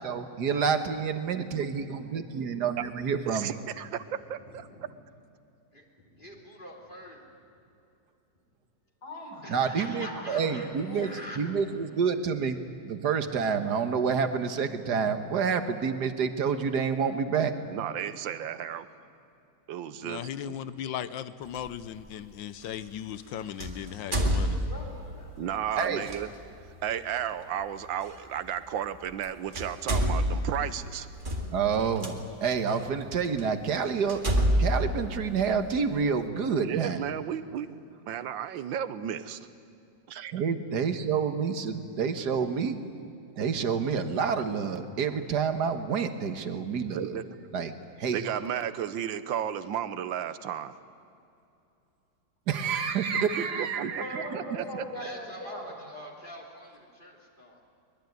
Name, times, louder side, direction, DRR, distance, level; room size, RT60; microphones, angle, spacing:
voice 1, 0.0-3.5 9.5-11.1 11.4-12.6 12.8-17.5 25.8-26.1 31.5-34.2 34.6-37.0 40.3-42.8 43.4-47.2 47.5-47.7 48.0-48.3 52.5-54.3, right 6 dB, 60° right, 9 dB, 1.9 m, -28 dB
voice 2, 3.3-4.0 4.3-4.7 17.7-18.9 19.7-20.6 25.4-26.3 26.8-31.1 36.6-37.7 38.1-39.4 40.1-40.3 46.9-47.2 48.1-50.7 53.4-54.7, right 10 dB, 85° right, 13 dB, 1.7 m, -33 dB
voice 3, 4.4-5.0 5.7-7.3 9.4-11.4 54.9-57.6, equal, 25° left, -1 dB, 3.4 m, -45 dB
voice 4, 9.0-11.6 24.5-25.5 48.4-48.5 53.9-55.8, left 1 dB, 55° left, 1 dB, 5.1 m, -42 dB
voice 5, 20.0-24.6, left 10 dB, 80° left, 15 dB, 1.6 m, -37 dB
sound 1, 21.5-21.7 23.6-25.1 26.0-26.2 28.1-28.2 29.1-29.2 29.5-32.1 32.8-32.9 33.4-33.5 34.1-35.9, equal, 25° right, 2.1 m, -27 dB
23.5 x 21.0 x 9.4 m, 2.6 s
omnidirectional pair, 2.0 m